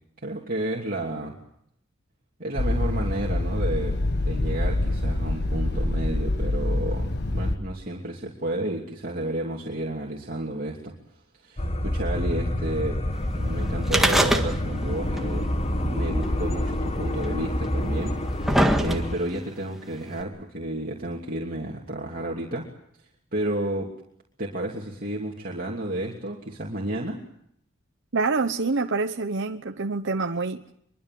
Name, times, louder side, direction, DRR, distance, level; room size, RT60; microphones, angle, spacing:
voice 1, 0.2-1.4 2.4-4.0 4.2-10.9 11.3-13.0 13.3-15.5 15.8-22.7 23.3-23.9 24.4-27.2, right 1 dB, 45° right, -2 dB, 2.9 m, -31 dB
sound 1, 2.6-7.6, left 2 dB, 55° left, 1.7 m, -25 dB
sound 2, 11.6-19.2, left 1 dB, 30° left, 1.4 m, -27 dB
sound 3, 13.9-14.9 15.2-15.3 16.2-16.3 17.2-17.3 18.0-19.3 20.2-20.3, right 1 dB, ahead, 1.8 m, -22 dB
voice 2, 28.1-30.6, right 3 dB, 60° right, 5 dB, 1.0 m, -26 dB
24.5 x 23.0 x 7.7 m, 0.73 s
head